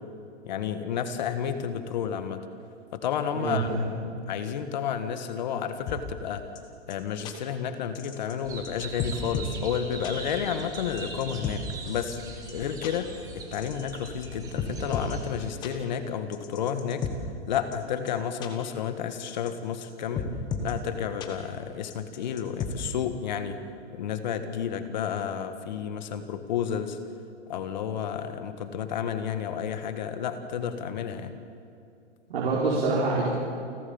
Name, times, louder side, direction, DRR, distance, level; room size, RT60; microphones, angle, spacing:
voice 1, 0.4-2.4 2.9-3.7 4.3-6.4 6.9-12.2 12.5-13.1 13.5-17.0 17.4-20.3 20.6-23.6 23.9-27.0 27.5-31.3, left 8 dB, 40° left, 9 dB, 1.6 m, -31 dB
voice 2, 3.3-3.9 32.3-33.3, right 3 dB, 55° right, -5 dB, 4.7 m, -26 dB
sound 1, 5.9-6.0 6.6-6.7 6.9-7.0 7.2-7.3 7.9-8.3 8.6-8.7 9.0-9.6 10.0-10.1 10.7-11.6 12.1-12.2 12.5-12.6 12.8-12.9 13.5-14.3 14.6-15.1 15.6-15.7 16.3-17.1 17.7-17.8 18.1-18.2 18.4-18.5 19.1-19.5 19.8-19.9 20.2-20.7 21.2-21.3 21.9-22.7, left 8 dB, 10° left, 1.2 m, -33 dB
sound 2, 8.4-15.5, right 3 dB, 10° right, 1.5 m, -41 dB
29.0 x 12.5 x 7.1 m, 2.5 s
hypercardioid pair, 170°, 34 cm